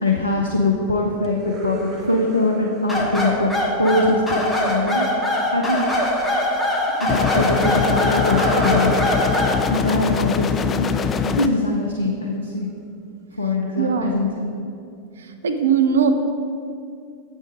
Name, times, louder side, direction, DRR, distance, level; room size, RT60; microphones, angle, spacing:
voice 1, 0.0-3.5 3.8-4.4 4.7-5.1 5.5-6.1 7.0-9.0 9.7-12.7 13.4-14.7, left 2 dB, 80° left, 0 dB, 0.6 m, -22 dB
sound 1, 1.2-4.2 7.9-11.6, right 1 dB, 25° right, 0.9 m, -33 dB
sound 2, 2.9-9.6, left 1 dB, 5° left, 1.3 m, -22 dB
sound 3, 7.1-11.5, left 6 dB, 20° left, 0.4 m, -23 dB
voice 2, 13.8-14.3 15.4-16.1, right 6 dB, 65° right, 7 dB, 0.5 m, -19 dB
7.8 x 5.5 x 4.9 m, 2.4 s
figure-of-eight pair, 90°, 0 cm